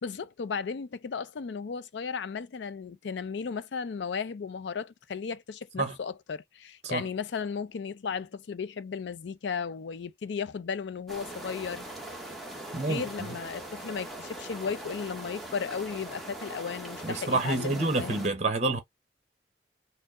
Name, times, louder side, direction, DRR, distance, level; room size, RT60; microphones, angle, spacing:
voice 1, 0.0-11.9 12.7-18.3, left 6 dB, 75° left, 0.4 m, -35 dB
sound 1, 11.1-18.3, right 1 dB, ahead, 0.9 m, -41 dB
voice 2, 12.7-13.0 17.0-18.8, right 3 dB, 40° right, 0.8 m, -28 dB
4.4 x 2.0 x 3.6 m
head